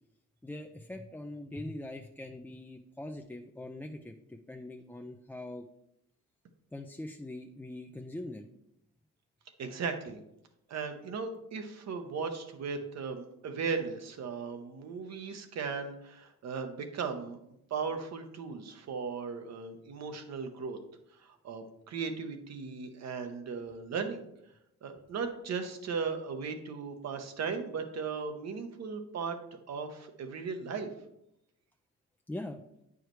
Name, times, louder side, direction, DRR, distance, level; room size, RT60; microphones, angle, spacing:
voice 1, 0.4-5.6 6.7-8.5 32.3-32.6, left 1 dB, 5° left, 2 dB, 0.4 m, -42 dB
voice 2, 9.6-10.2 10.7-17.4 17.7-20.8 21.2-24.2 24.8-29.4 29.7-30.9, right 5 dB, 60° right, 6 dB, 1.0 m, -37 dB
8.9 x 4.8 x 3.1 m, 0.81 s
cardioid pair, 90°, 30 cm